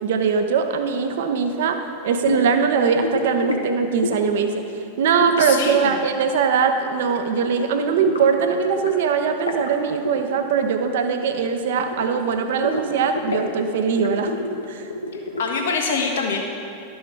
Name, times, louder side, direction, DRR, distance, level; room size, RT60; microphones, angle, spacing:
voice 1, 0.0-1.8 2.0-4.6 5.0-14.3 14.7-14.9, right 6 dB, 60° right, 6 dB, 0.7 m, -21 dB
sound 1, 2.2-2.6 3.0-3.6 4.0-4.4 5.2-6.6 6.9-7.2 7.4-9.0 9.2-9.7 10.0-10.2 10.4-10.9 11.2-12.3 12.6-13.5 13.9-15.7, left 2 dB, 80° left, 0.9 m, -29 dB
voice 2, 5.4-6.0 15.1-16.4, left 5 dB, 65° left, 0 dB, 1.4 m, -25 dB
12.0 x 6.3 x 4.7 m, 2.6 s
figure-of-eight pair, 90°, 0 cm